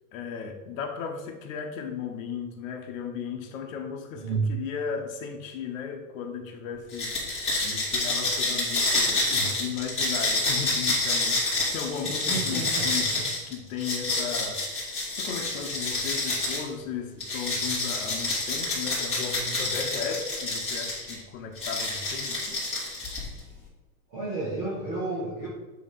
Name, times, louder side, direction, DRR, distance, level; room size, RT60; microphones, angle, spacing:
voice 1, 0.1-13.1 13.5-14.8 15.1-22.6, left 6 dB, 60° left, 4 dB, 1.2 m, -36 dB
voice 2, 4.2-4.5 12.0-12.8 13.1-13.2 24.1-25.5, right 3 dB, 15° right, -6 dB, 0.4 m, -31 dB
sound 1, 6.9-16.7 17.2-21.1 21.6-23.4, left 2 dB, 15° left, 2.4 m, -28 dB
8.2 x 3.1 x 5.5 m, 1.2 s
supercardioid pair, 170°, 45 cm